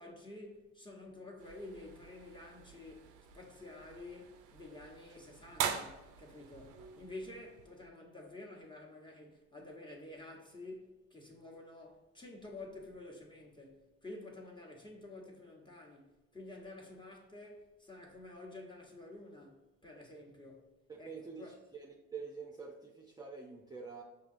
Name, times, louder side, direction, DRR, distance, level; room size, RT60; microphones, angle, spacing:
voice 1, 0.0-20.7 21.0-21.6, left 2 dB, 15° left, 1.0 m, -50 dB
sound 1, 1.4-7.9, right 8 dB, 90° right, 0.5 m, -44 dB
voice 2, 20.9-21.5 21.8-24.0, right 5 dB, 15° right, 0.5 m, -46 dB
5.9 x 2.8 x 2.6 m
cardioid pair, 90°, 30 cm